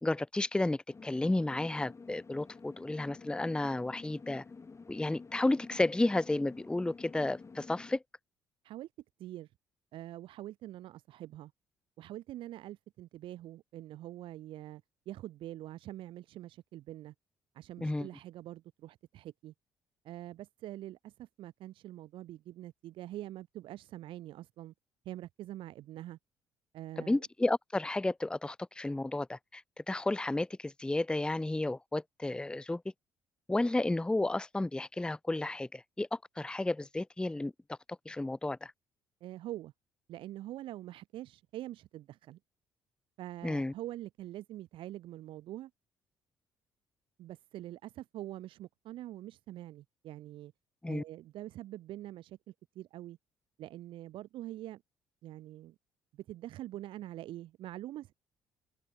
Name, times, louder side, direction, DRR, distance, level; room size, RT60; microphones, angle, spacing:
voice 1, 0.0-4.4 4.9-8.0 17.8-18.1 27.1-32.8 33.5-38.7 43.4-43.7 50.8-51.0, left 2 dB, 10° left, 0.6 m, -32 dB
sound 1, 0.9-8.0, left 4 dB, 30° left, 3.2 m, -50 dB
voice 2, 9.9-11.5 12.0-17.1 17.5-19.5 20.0-24.7 25.0-26.2 26.7-27.2 39.2-39.7 40.1-42.4 43.2-45.7 47.2-50.5 50.9-53.2 53.6-54.8 55.2-55.7 56.1-58.1, right 14 dB, 65° right, 2.8 m, -45 dB
open air
hypercardioid pair, 50°, 10 cm